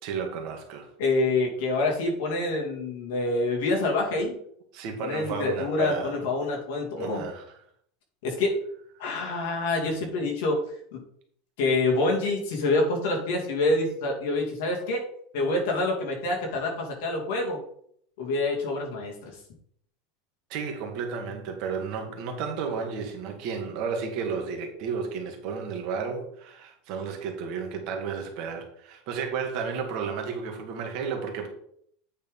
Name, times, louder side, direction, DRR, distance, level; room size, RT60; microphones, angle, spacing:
voice 1, 0.0-0.9 4.7-6.1 7.0-7.4 20.5-31.5, right 6 dB, 45° right, 3 dB, 1.6 m, -32 dB
voice 2, 1.0-4.4 5.0-7.2 8.2-8.6 9.0-10.6 10.9-11.0 11.6-15.0 15.3-17.6 18.2-19.3, left 2 dB, 60° left, 0 dB, 2.6 m, -26 dB
8.8 x 4.0 x 5.4 m, 0.67 s
supercardioid pair, 175°, 0 cm